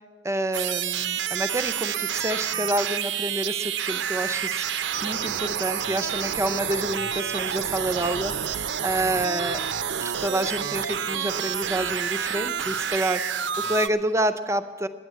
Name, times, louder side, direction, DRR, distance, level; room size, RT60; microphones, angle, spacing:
voice 1, 0.2-4.7 5.0-9.6 10.2-14.9, right 1 dB, 15° right, 11 dB, 0.5 m, -28 dB
sound 1, 0.5-13.9, right 8 dB, 80° right, 0.5 m, -29 dB
10.5 x 9.8 x 8.3 m, 1.4 s
head